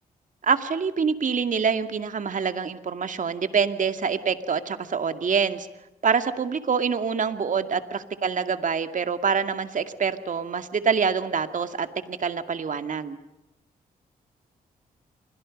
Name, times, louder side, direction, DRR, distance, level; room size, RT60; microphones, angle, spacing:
voice 1, 0.4-5.7 6.0-13.2, right 6 dB, 55° right, 9 dB, 2.3 m, -26 dB
29.5 x 24.5 x 5.4 m, 0.96 s
cardioid pair, 70°, 16 cm